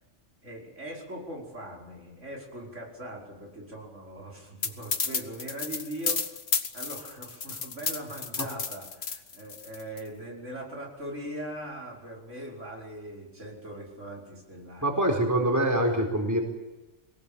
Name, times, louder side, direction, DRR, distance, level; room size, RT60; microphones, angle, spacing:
voice 1, 0.4-6.3 6.7-14.9, right 1 dB, 80° right, -1 dB, 5.8 m, -40 dB
sound 1, 4.6-10.0, left 5 dB, 60° left, 1.7 m, -31 dB
voice 2, 14.8-16.4, right 1 dB, 15° right, 1 dB, 4.2 m, -24 dB
23.5 x 19.0 x 8.8 m, 1.1 s
omnidirectional pair, 1.2 m